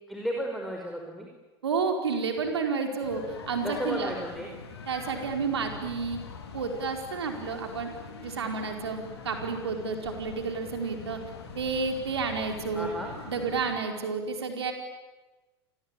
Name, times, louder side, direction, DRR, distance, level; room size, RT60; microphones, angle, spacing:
voice 1, 0.1-1.3 3.6-4.5 12.7-13.1, equal, ahead, 1 dB, 5.3 m, -33 dB
voice 2, 1.6-3.2 3.5-4.1 4.9-6.2 6.5-7.9 8.2-11.2 11.5-12.9 13.3-14.7, right 5 dB, 80° right, 4 dB, 4.8 m, -30 dB
sound 1, 3.0-13.8, left 5 dB, 75° left, 4.2 m, -44 dB
29.5 x 21.0 x 9.1 m, 1.2 s
figure-of-eight pair, 80°, 13 cm